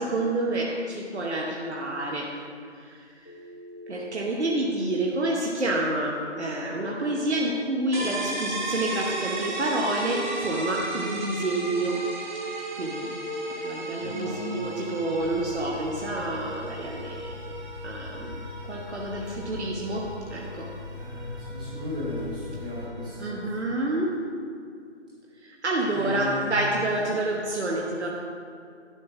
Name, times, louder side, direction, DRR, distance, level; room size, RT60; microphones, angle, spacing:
voice 1, 0.0-2.3 2.7-3.3 3.9-12.0 12.8-13.1 13.6-17.3 17.8-18.4 18.7-20.7 23.2-24.2 25.4-28.1, right 2 dB, 70° right, -1 dB, 1.1 m, -28 dB
Telephone, 3.2-4.3 6.2-7.2 9.1-10.2, equal, 30° left, 0.9 m, -43 dB
sound 1, 7.9-23.5, right 2 dB, 40° right, 1.0 m, -36 dB
voice 2, 14.0-14.7 20.9-23.5 25.9-26.5 27.0-27.2, left 2 dB, 5° right, -12 dB, 1.1 m, -35 dB
sound 2, 15.2-22.9, left 3 dB, 50° left, 1.2 m, -41 dB
11.0 x 3.8 x 5.9 m, 2.2 s
figure-of-eight pair, 165°, 35 cm